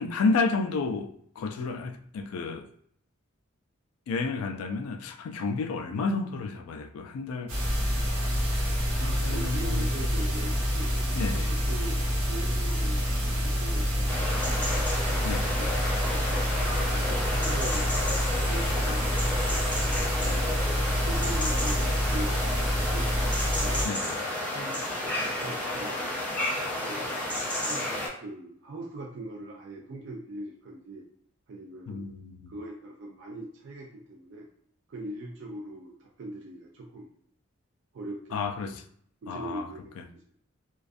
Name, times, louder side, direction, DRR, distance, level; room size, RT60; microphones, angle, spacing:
voice 1, 0.0-2.7 4.1-7.8 8.9-9.9 11.1-11.5 15.2-15.6 23.8-24.2 31.9-32.5 38.3-38.8 39.3-39.7, left 4 dB, 80° left, 0.3 m, -31 dB
sound 1, 7.5-23.9, equal, 80° right, 0.8 m, -27 dB
voice 2, 8.9-14.6 15.6-15.7 15.9-18.1 18.5-20.6 21.0-23.1 23.6-23.9 24.5-24.8 25.4-26.1 26.8-27.1 27.7-27.9 28.2-31.1 31.5-32.1 32.5-34.5 34.9-37.1 37.9-38.4 39.2-40.4, right 1 dB, 55° right, 0.3 m, -41 dB
sound 2, 14.1-28.1, left 1 dB, 5° left, 0.5 m, -31 dB
2.4 x 2.2 x 2.4 m
head